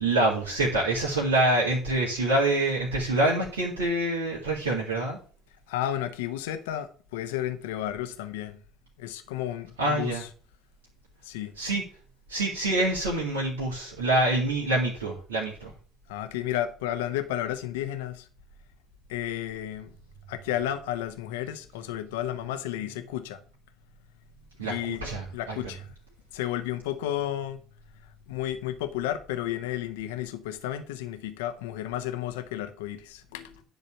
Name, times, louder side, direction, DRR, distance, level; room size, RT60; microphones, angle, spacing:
voice 1, 0.0-5.2 9.8-10.2 11.6-11.8 12.3-15.7 24.6-25.6, right 2 dB, 85° right, 2.1 m, -26 dB
voice 2, 5.7-8.6 9.0-10.3 11.2-11.5 16.1-18.3 19.1-19.9 20.3-23.4 24.6-25.0 25.3-25.9 26.3-27.6 28.3-33.6, left 12 dB, 75° left, 0.9 m, -32 dB
10.5 x 4.0 x 7.0 m
hypercardioid pair, 60°, 0 cm